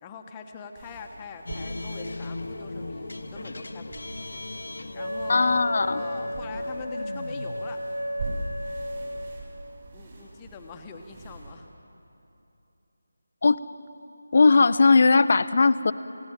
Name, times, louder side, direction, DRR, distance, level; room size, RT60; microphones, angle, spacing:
voice 1, 0.0-4.4 4.9-7.8 9.9-11.7, left 5 dB, 15° left, 3 dB, 1.3 m, -43 dB
sound 1, 0.7-11.5, right 2 dB, 35° right, 7.2 m, -42 dB
sound 2, 1.5-8.8, left 2 dB, 60° left, 1.0 m, -39 dB
Wind instrument woodwind instrument, 4.9-9.4, equal, 70° right, 2.2 m, -33 dB
voice 2, 5.3-6.0 13.4-13.6 14.3-15.9, left 4 dB, 45° left, 14 dB, 0.7 m, -18 dB
28.5 x 17.0 x 9.2 m, 2.9 s
figure-of-eight pair, 160°, 0 cm